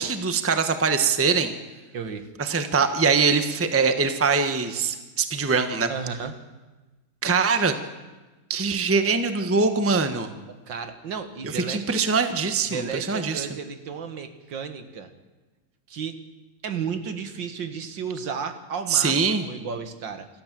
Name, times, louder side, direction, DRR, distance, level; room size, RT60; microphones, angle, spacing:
voice 1, 0.0-1.5 2.4-5.9 7.2-7.7 8.5-10.3 11.4-13.5 18.9-19.4, right 5 dB, 10° right, 8 dB, 0.9 m, -23 dB
voice 2, 1.9-2.3 5.9-6.4 10.5-12.0 12.7-15.1 15.9-16.2 16.6-20.3, right 6 dB, 65° right, 8 dB, 2.1 m, -33 dB
26.5 x 14.0 x 7.6 m, 1.2 s
omnidirectional pair, 2.2 m